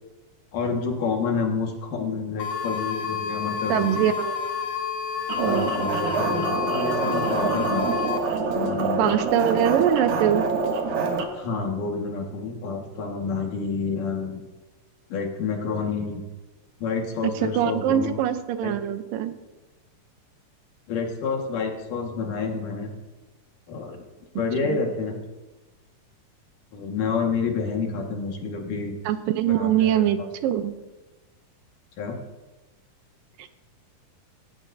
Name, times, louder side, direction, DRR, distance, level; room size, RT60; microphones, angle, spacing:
voice 1, 0.5-4.0 5.3-7.9 8.5-9.2 11.3-14.4 15.1-16.2 16.8-18.2 18.6-18.7 20.9-22.9 23.7-24.0 24.4-25.2 26.7-29.0 29.5-30.3 32.0-32.2, left 5 dB, 70° left, 1 dB, 3.4 m, -29 dB
sound 1, 2.4-8.2, left 6 dB, 90° left, 1.0 m, -30 dB
voice 2, 3.7-4.5 5.4-5.7 9.0-10.5 17.4-19.3 24.6-24.8 29.1-30.7 33.4-33.5, right 10 dB, 90° right, 10 dB, 2.5 m, -23 dB
sound 2, 5.3-11.2, right 5 dB, 65° right, 2.7 m, -26 dB
18.5 x 17.0 x 2.8 m, 1.1 s
omnidirectional pair, 3.8 m